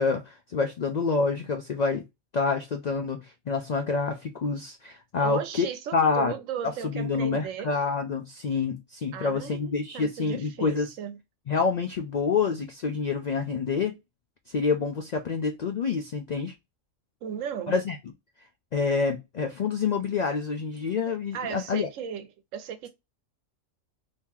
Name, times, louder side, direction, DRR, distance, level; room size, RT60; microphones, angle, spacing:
voice 1, 0.0-2.0 2.3-5.7 5.9-6.3 6.6-10.9 11.5-13.9 14.5-16.5 17.7-18.0 18.7-21.9, left 5 dB, 85° left, 0.3 m, -27 dB
voice 2, 5.2-7.8 9.1-11.2 17.2-17.8 21.3-22.9, right 8 dB, 80° right, 1.0 m, -36 dB
2.9 x 2.7 x 3.6 m
omnidirectional pair, 1.3 m